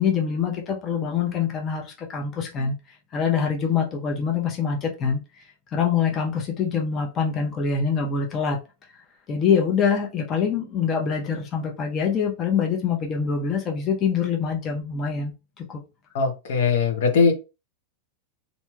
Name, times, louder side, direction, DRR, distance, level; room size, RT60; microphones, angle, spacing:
voice 1, 0.0-2.7 3.1-5.2 5.7-8.6 9.3-15.8, left 6 dB, 30° left, 0.6 m, -24 dB
voice 2, 16.1-17.3, left 5 dB, 70° left, 0.8 m, -20 dB
3.1 x 2.6 x 2.3 m
supercardioid pair, 140°, 0 cm